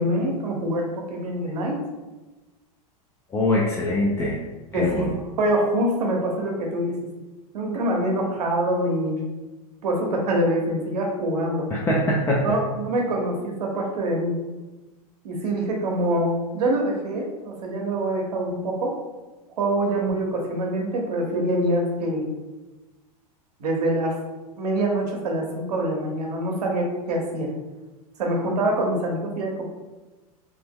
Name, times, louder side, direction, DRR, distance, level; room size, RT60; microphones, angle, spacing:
voice 1, 0.0-1.8 4.7-6.9 7.5-9.1 9.8-11.7 12.4-14.3 15.2-18.9 19.6-22.2 23.6-24.1 24.6-27.5 28.2-29.6, right 1 dB, 85° right, 1 dB, 0.9 m, -25 dB
voice 2, 3.3-4.4 4.7-5.1 11.7-12.6, left 1 dB, 15° left, -3 dB, 0.4 m, -23 dB
3.0 x 2.0 x 3.5 m, 1.2 s
hypercardioid pair, 120°, 20 cm